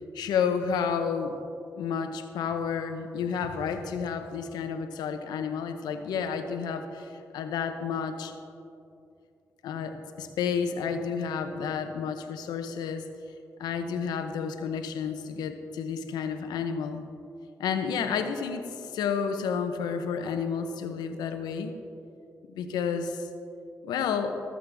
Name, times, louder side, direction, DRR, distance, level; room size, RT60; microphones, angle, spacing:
voice 1, 0.1-1.4 1.8-8.3 9.6-13.0 13.6-17.0 17.6-21.7 22.5-23.3 23.8-24.4, left 6 dB, 90° left, 7 dB, 0.9 m, -31 dB
20.5 x 7.6 x 3.5 m, 2.6 s
supercardioid pair, 50°, 7 cm